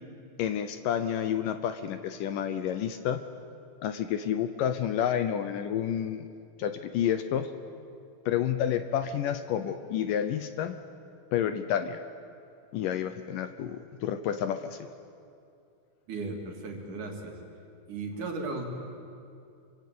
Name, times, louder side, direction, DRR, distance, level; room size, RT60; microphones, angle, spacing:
voice 1, 0.4-3.2 3.8-6.3 6.6-7.5 8.3-10.8 11.3-12.0 12.7-14.8, left 9 dB, 75° left, 9 dB, 2.2 m, -29 dB
voice 2, 16.1-17.4 17.9-18.7, right 3 dB, 55° right, 2 dB, 4.2 m, -36 dB
27.0 x 25.0 x 8.6 m, 2.5 s
omnidirectional pair, 4.4 m